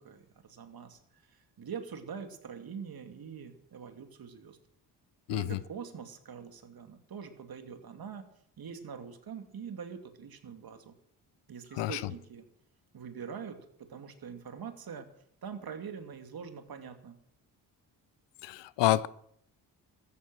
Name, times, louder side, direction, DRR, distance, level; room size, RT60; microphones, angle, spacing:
voice 1, 0.0-4.6 5.3-8.2 8.6-10.9 11.5-12.4 12.9-15.1 15.4-17.2, right 6 dB, 60° right, 2.6 m, -44 dB
voice 2, 18.4-19.1, left 15 dB, 80° left, 0.7 m, -28 dB
14.0 x 14.0 x 6.2 m
supercardioid pair, 60°, 42 cm